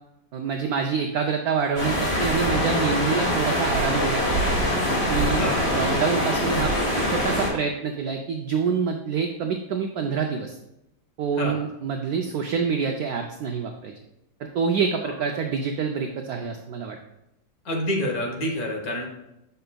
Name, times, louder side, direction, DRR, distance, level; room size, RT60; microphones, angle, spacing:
voice 1, 0.3-4.6 5.1-5.4 5.7-6.7 7.1-10.6 11.2-13.9 14.4-17.0, right 6 dB, 80° right, 3 dB, 0.8 m, -26 dB
sound 1, 1.8-7.5, equal, 35° left, 1.6 m, -24 dB
voice 2, 17.6-19.0, left 1 dB, 50° left, -1 dB, 1.5 m, -27 dB
6.7 x 6.5 x 2.2 m, 0.87 s
omnidirectional pair, 2.1 m